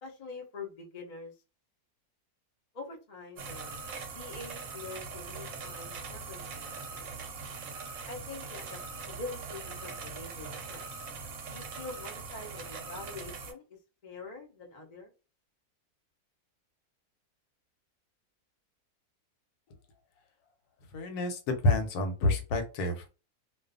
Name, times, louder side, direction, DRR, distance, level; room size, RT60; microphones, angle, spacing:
voice 1, 0.0-1.3 2.7-3.7 4.1-7.3 8.1-8.8 9.1-10.8 11.5-13.6 14.0-15.1, left 3 dB, 55° left, 0 dB, 0.4 m, -45 dB
sound 1, 3.4-13.5, right 4 dB, 65° right, 0.9 m, -41 dB
voice 2, 20.9-23.1, left 2 dB, 80° left, 6 dB, 1.1 m, -28 dB
2.5 x 2.3 x 2.5 m, 0.32 s
omnidirectional pair, 1.7 m